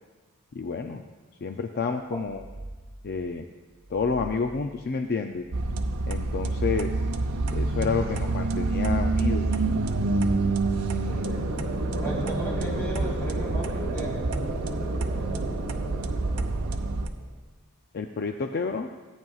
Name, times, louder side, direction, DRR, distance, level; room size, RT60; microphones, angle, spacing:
voice 1, 0.5-1.0 1.4-2.4 3.0-3.5 3.9-5.4 6.1-6.9 7.5-9.5 17.9-18.9, left 5 dB, 45° left, 5 dB, 0.4 m, -29 dB
sound 1, 2.1-3.2 3.7-4.8 5.3-6.4 6.9-8.0 8.5-9.5 10.1-11.2, right 1 dB, 10° right, 0.7 m, -43 dB
sound 2, 5.5-17.1, right 2 dB, 80° right, 0.7 m, -27 dB
voice 2, 10.9-11.4 12.0-14.2, right 1 dB, 10° left, -6 dB, 3.6 m, -36 dB
sound 3, 11.1-17.1, right 2 dB, 60° right, 1.8 m, -34 dB
17.0 x 9.1 x 2.4 m, 1.3 s
head